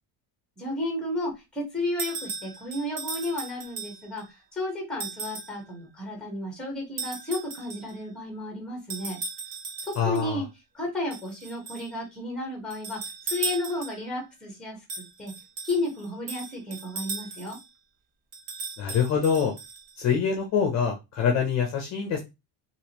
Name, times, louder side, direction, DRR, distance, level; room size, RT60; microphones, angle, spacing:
voice 1, 0.6-4.2 4.5-9.2 9.9-10.5 10.7-13.0 13.3-15.3 15.7-17.6, left 1 dB, ahead, 1 dB, 1.1 m, -32 dB
sound 1, 2.0-4.2 5.0-5.6 7.0-8.0 8.9-10.3 11.1-11.9 12.7-14.1 14.9-17.7 18.3-20.1, right 4 dB, 60° right, 0.9 m, -37 dB
voice 2, 10.0-10.4 18.8-19.5 20.0-22.2, left 7 dB, 40° left, 3 dB, 0.6 m, -25 dB
3.4 x 2.5 x 2.9 m, 0.23 s
cardioid pair, 180°, 44 cm